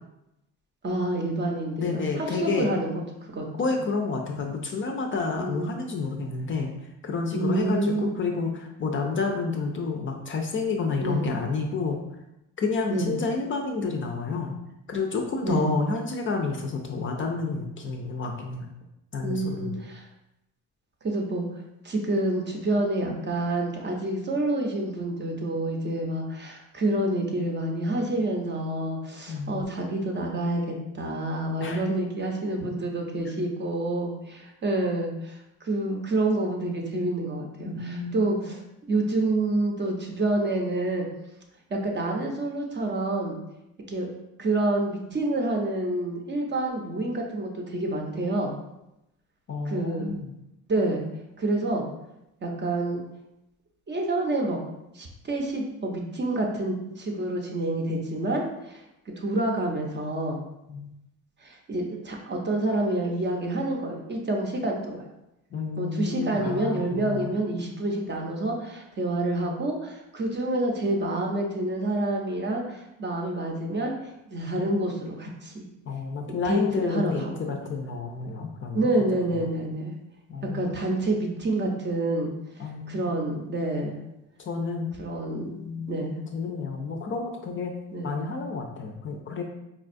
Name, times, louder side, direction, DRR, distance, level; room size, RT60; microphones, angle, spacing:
voice 1, 0.8-3.4 5.4-5.7 7.3-8.1 11.0-11.2 12.9-13.1 15.4-15.7 19.2-20.0 21.0-21.5 21.8-38.6 38.9-41.1 41.7-43.4 43.9-48.5 49.6-50.1 50.7-51.0 51.4-51.9 52.4-53.0 53.9-54.6 54.9-60.4 61.4-65.1 65.8-73.9 74.3-75.6 76.3-77.3 78.7-79.9 80.4-82.3 82.9-84.0 85.0-86.1 87.9-88.1, right 2 dB, 30° right, 1 dB, 0.6 m, -28 dB
voice 2, 1.8-2.7 3.6-6.7 7.0-12.0 12.6-14.6 14.9-18.7 19.1-19.8 29.3-29.6 31.6-31.9 37.6-38.5 49.5-50.3 60.7-60.9 65.5-67.3 75.9-78.9 79.4-79.5 80.3-80.7 82.6-83.2 84.5-84.9 85.6-87.7 88.0-89.4, left 4 dB, 35° left, 2 dB, 0.4 m, -30 dB
4.2 x 2.3 x 2.5 m, 0.88 s
cardioid pair, 100°, 36 cm